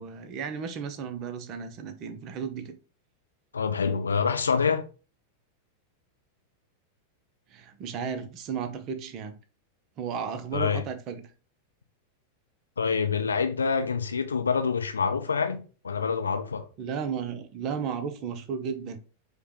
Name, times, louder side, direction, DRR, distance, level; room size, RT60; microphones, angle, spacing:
voice 1, 0.0-2.8 7.5-9.4 10.0-11.3 16.8-19.0, right 6 dB, 35° right, 0.6 m, -34 dB
voice 2, 3.5-4.8 10.5-10.8 12.8-15.6 15.8-16.6, left 5 dB, 75° left, 0.5 m, -26 dB
4.9 x 2.2 x 3.2 m
figure-of-eight pair, 90°, 0 cm